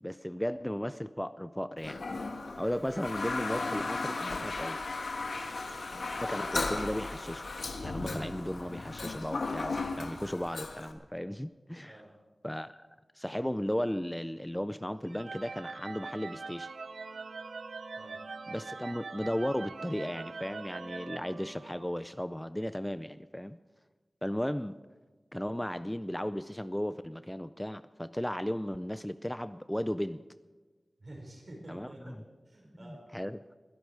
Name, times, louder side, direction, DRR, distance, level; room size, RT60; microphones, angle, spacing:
voice 1, 0.0-2.0 2.6-4.8 6.2-7.5 7.8-12.0 12.4-12.9 13.1-16.7 18.5-23.6 24.2-24.8 25.3-30.2 31.7-32.1 32.8-33.4, equal, 10° left, 13 dB, 0.4 m, -35 dB
Toilet flush, 1.8-10.9, left 3 dB, 80° left, 1.4 m, -36 dB
sound 1, 15.1-22.1, right 4 dB, 85° right, 0.6 m, -43 dB
voice 2, 31.0-32.2 32.5-33.0, right 1 dB, 55° right, -1 dB, 5.4 m, -49 dB
21.0 x 11.5 x 4.9 m, 1.3 s
wide cardioid pair, 65°, 0 cm